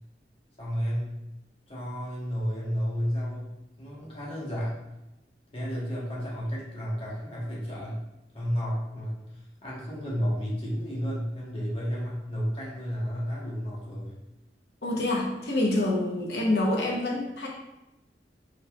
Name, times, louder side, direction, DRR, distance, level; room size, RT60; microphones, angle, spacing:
voice 1, 0.6-1.2 1.7-3.5 3.8-4.8 5.5-8.0 8.3-14.1, equal, 30° left, -6 dB, 1.3 m, -32 dB
voice 2, 14.8-17.5, left 1 dB, 65° left, -2 dB, 1.0 m, -26 dB
4.7 x 3.9 x 2.4 m, 0.94 s
head